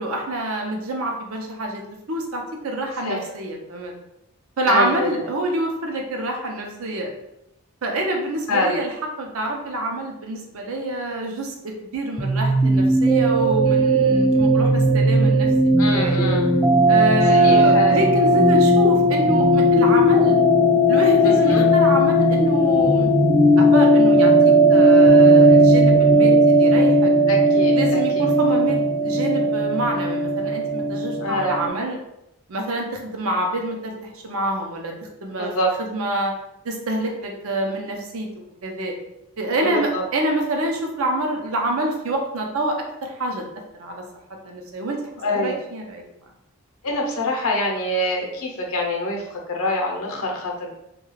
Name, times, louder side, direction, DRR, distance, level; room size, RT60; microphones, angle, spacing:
voice 1, 0.0-1.8 2.1-3.9 4.6-7.1 7.8-8.9 9.2-16.2 16.9-20.4 20.9-23.1 23.6-27.1 27.7-32.0 32.5-34.9 35.2-35.5 35.8-36.3 36.6-38.3 38.6-38.9 39.4-42.8 43.0-43.4 43.8-44.0 44.4-45.0 45.4-46.0, right 1 dB, 70° right, 1 dB, 0.6 m, -26 dB
voice 2, 4.7-5.3 8.5-8.8 15.8-16.6 17.3-18.0 21.2-21.7 27.3-28.2 31.2-31.6 35.3-35.7 39.6-40.0 45.2-45.5 46.8-50.7, left 1 dB, 75° left, 0 dB, 0.7 m, -25 dB
sound 1, 12.2-31.7, right 1 dB, ahead, 0.3 m, -16 dB
2.3 x 2.3 x 3.1 m, 0.85 s
head